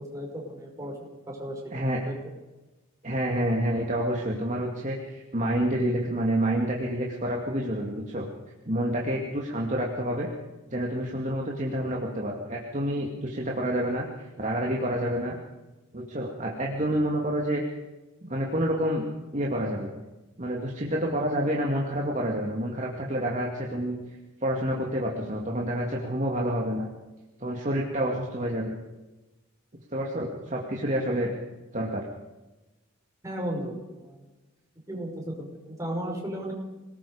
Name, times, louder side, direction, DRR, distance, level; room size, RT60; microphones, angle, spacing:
voice 1, 0.0-1.6 2.1-2.2 33.2-34.2 34.9-36.5, right 1 dB, 15° right, -1 dB, 5.5 m, -35 dB
voice 2, 3.0-8.3 8.7-10.3 10.7-15.4 15.9-17.6 18.2-19.1 19.3-20.0 20.4-24.0 24.4-26.9 27.4-28.8 29.9-31.3 31.7-32.1, right 1 dB, 35° right, -1 dB, 2.3 m, -28 dB
27.0 x 19.5 x 5.0 m, 1.1 s
head